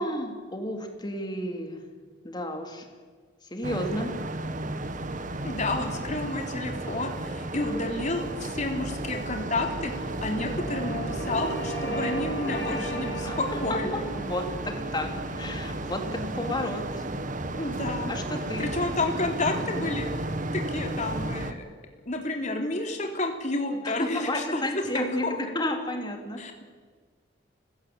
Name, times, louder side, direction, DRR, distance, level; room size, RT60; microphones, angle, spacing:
voice 1, 0.0-1.9 2.2-2.9 3.4-4.2 13.2-17.0 18.1-18.7 23.8-26.6, left 1 dB, 25° left, 4 dB, 3.4 m, -32 dB
sound 1, 3.6-21.5, right 2 dB, 45° right, 1.6 m, -34 dB
sound 2, 4.6-16.8, left 1 dB, 65° right, 5.8 m, -48 dB
voice 2, 5.4-9.9 10.2-14.1 17.6-18.1 18.6-20.1 20.4-21.6 22.1-25.3 26.4-26.6, left 2 dB, 40° left, 3 dB, 3.8 m, -30 dB
sound 3, 6.6-18.9, right 1 dB, 60° left, 7.2 m, -39 dB
29.0 x 17.0 x 8.8 m, 1.5 s
head